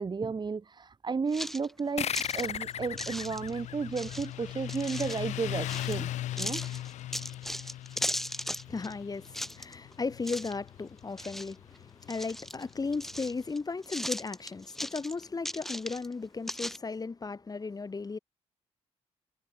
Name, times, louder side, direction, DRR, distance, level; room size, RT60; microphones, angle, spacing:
voice 1, 0.0-6.1 6.4-6.6, right 5 dB, 40° right, 2.6 m, -33 dB
sound 1, 1.3-2.5 3.0-3.6 3.9-5.2 5.7-6.0 6.4-8.9 9.2-9.9 10.2-10.7 11.0-11.8 12.1-13.6 13.8-16.1 16.5-16.8, equal, ahead, 4.3 m, -37 dB
sound 2, 2.0-5.0, left 9 dB, 65° left, 3.2 m, -36 dB
Motorcycle, 2.2-13.4, left 14 dB, 80° left, 0.8 m, -40 dB
voice 2, 8.6-18.2, left 4 dB, 30° left, 2.4 m, -36 dB
cardioid pair, 70°, 12 cm